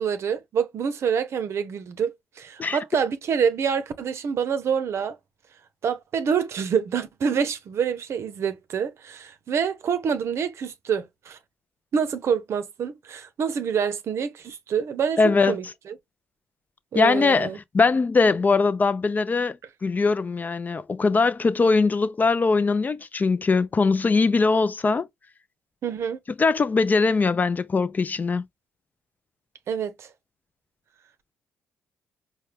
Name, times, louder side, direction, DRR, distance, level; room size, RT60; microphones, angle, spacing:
voice 1, 0.0-5.2 5.8-11.4 11.9-16.0 16.9-17.6 25.8-26.2 29.7-30.1, right 7 dB, 55° right, 0.6 m, -27 dB
voice 2, 15.2-15.6 16.9-17.5 17.7-19.6 19.8-25.1 26.4-28.4, left 4 dB, 30° left, 0.4 m, -21 dB
4.5 x 2.2 x 3.2 m
hypercardioid pair, 50°, 5 cm